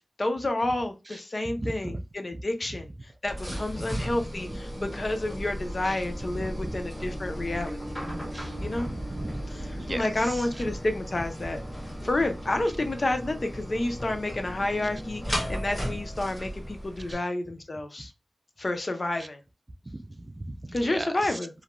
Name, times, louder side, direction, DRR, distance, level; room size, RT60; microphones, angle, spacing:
voice 1, 0.2-7.9 8.6-8.9 9.5-11.6 12.0-18.1 18.6-19.4 20.7-21.5, left 2 dB, 45° left, 0.5 m, -30 dB
voice 2, 1.1-2.0 2.3-2.4 3.5-4.0 5.8-6.0 6.4-6.8 8.3-8.6 8.9-9.4 9.7-10.5 11.4-11.5 17.0-17.2 19.2-19.3 19.9-21.4, right 1 dB, 30° right, 0.3 m, -38 dB
sound 1, 3.2-17.1, equal, 20° left, 1.4 m, -36 dB
2.4 x 2.1 x 2.9 m
wide cardioid pair, 85°, 0 cm